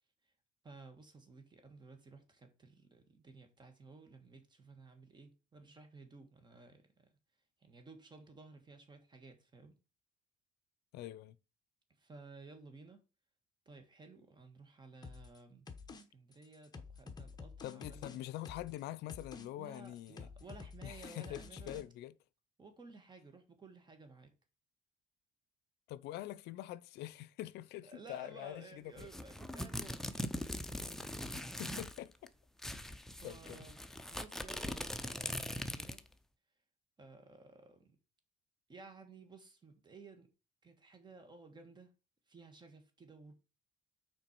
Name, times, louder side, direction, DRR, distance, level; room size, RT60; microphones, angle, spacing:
voice 1, 0.6-7.2 7.6-9.7 12.0-13.0 13.6-15.6 16.1-18.0 19.5-21.8 22.6-24.3 27.9-30.5 33.2-33.8 34.1-36.0 37.0-38.0 38.7-40.3 40.6-41.9 42.3-43.3, right 3 dB, 25° right, 1.6 m, -56 dB
voice 2, 10.9-11.4 17.6-20.3 20.8-22.1 25.9-29.1 31.3-32.3 33.2-33.7, left 14 dB, 80° left, 0.5 m, -45 dB
sound 1, 15.0-15.4 15.7-16.0 16.3-18.8 19.1-19.5 19.7-21.8, left 4 dB, 25° left, 1.0 m, -50 dB
sound 2, 29.0-32.0 32.3-32.4 32.6-36.1, left 1 dB, ahead, 0.6 m, -41 dB
6.1 x 4.4 x 4.6 m
cardioid pair, 110°, 17 cm